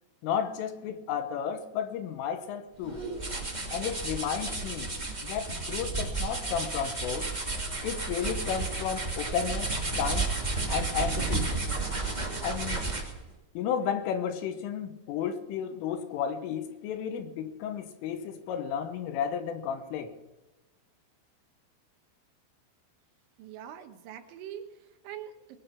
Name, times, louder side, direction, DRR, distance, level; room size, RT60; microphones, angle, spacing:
voice 1, 0.2-3.0 3.7-4.9 5.2-7.3 7.8-10.3 10.7-11.5 12.4-12.9 13.6-20.2, left 8 dB, 80° left, 3.7 m, -33 dB
sound 1, 2.8-13.2, right 3 dB, 25° right, 0.8 m, -32 dB
voice 2, 23.4-25.6, right 10 dB, 75° right, 3.3 m, -43 dB
20.5 x 10.0 x 5.9 m
omnidirectional pair, 5.9 m